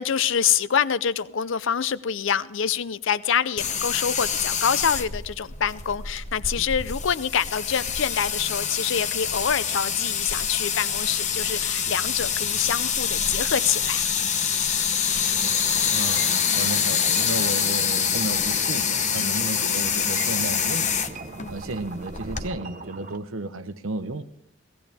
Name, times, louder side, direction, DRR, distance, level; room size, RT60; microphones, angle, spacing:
voice 1, 0.0-14.1, left 8 dB, 65° left, 17 dB, 0.5 m, -26 dB
sound 1, 3.6-22.5, left 7 dB, 35° left, 0.8 m, -26 dB
sound 2, 15.2-23.2, right 3 dB, 40° right, 0.9 m, -40 dB
voice 2, 15.9-21.0 21.5-24.2, right 2 dB, 75° right, 11 dB, 0.9 m, -33 dB
18.0 x 15.0 x 3.5 m, 0.73 s
head